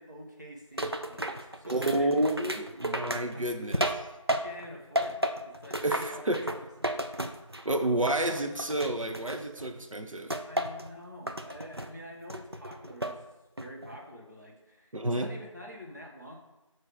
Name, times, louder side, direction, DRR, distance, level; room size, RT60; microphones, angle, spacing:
voice 1, 0.0-2.1 3.3-6.6 8.0-8.2 10.4-13.2 13.6-16.4, left 1 dB, 35° right, -2 dB, 1.0 m, -47 dB
sound 1, 0.8-4.7 5.0-7.7 8.1-9.7 10.3-10.9 11.3-11.9 12.3-13.2 13.6-14.0, right 1 dB, 50° right, 0.4 m, -33 dB
voice 2, 1.7-3.9 5.8-6.4 7.6-10.3 14.9-15.3, right 1 dB, 80° right, 5 dB, 0.8 m, -29 dB
6.9 x 3.2 x 4.6 m, 1.0 s
figure-of-eight pair, 180°, 17 cm